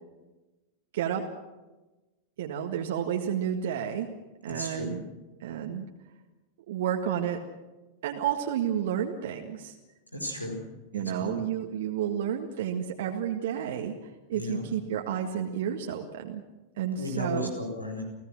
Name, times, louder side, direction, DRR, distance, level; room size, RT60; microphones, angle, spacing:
voice 1, 0.9-1.3 2.4-4.1 4.4-5.0 5.4-5.8 6.7-7.4 8.0-9.7 10.9-13.9 14.3-16.4 16.8-17.5, right 9 dB, 55° right, 2 dB, 1.8 m, -31 dB
voice 2, 4.5-5.0 10.1-10.6 10.9-11.4 14.3-14.6 16.9-18.0, left 1 dB, 85° left, 3 dB, 5.0 m, -34 dB
29.5 x 17.0 x 6.3 m, 1.1 s
figure-of-eight pair, 90°, 0 cm